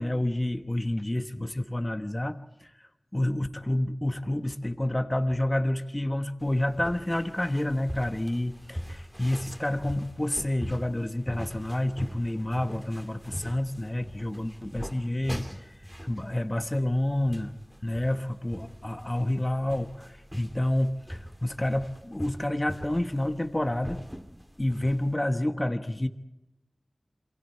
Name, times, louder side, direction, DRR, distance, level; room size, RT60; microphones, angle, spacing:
voice 1, 0.0-2.7 3.1-15.7 16.0-17.5 17.8-24.0 24.6-26.1, left 1 dB, 25° left, 7 dB, 1.2 m, -29 dB
sound 1, 6.4-25.2, equal, 5° right, 2.3 m, -42 dB
27.5 x 23.0 x 4.7 m, 0.92 s
wide cardioid pair, 40°, 0 cm